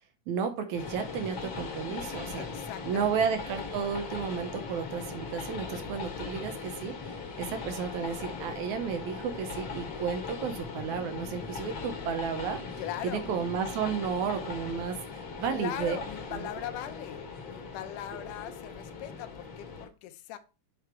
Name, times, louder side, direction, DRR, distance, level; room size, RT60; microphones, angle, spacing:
voice 1, 0.3-2.5 2.9-16.0 16.3-16.5, right 6 dB, 75° right, 7 dB, 2.2 m, -33 dB
Train, 0.7-19.9, left 4 dB, 55° left, 1.6 m, -39 dB
voice 2, 2.4-3.3 12.8-13.3 15.5-20.4, left 12 dB, 90° left, 10 dB, 2.3 m, -40 dB
8.0 x 3.6 x 4.4 m, 0.32 s
omnidirectional pair, 3.6 m